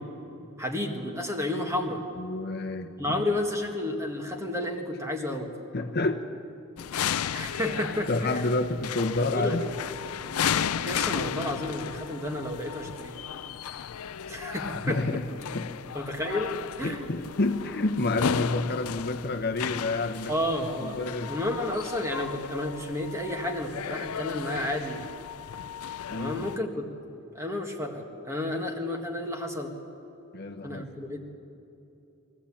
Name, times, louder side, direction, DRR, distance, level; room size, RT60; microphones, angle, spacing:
voice 1, 0.6-2.0 3.0-5.5 7.3-8.6 9.3-9.6 10.7-13.1 14.3-15.0 15.9-16.5 16.8-17.1 20.3-25.1 26.1-26.9 27.3-29.7 30.6-31.2, left 1 dB, 15° right, 3 dB, 1.9 m, -31 dB
voice 2, 2.2-3.2 5.7-6.3 8.1-9.7 14.7-15.3 15.5-15.7 16.8-20.3 20.8-21.4 26.1-26.5 30.3-30.9, left 2 dB, 50° left, 5 dB, 1.0 m, -29 dB
sound 1, 6.8-26.6, left 8 dB, 85° left, 0.5 m, -34 dB
22.5 x 15.0 x 8.7 m, 3.0 s
head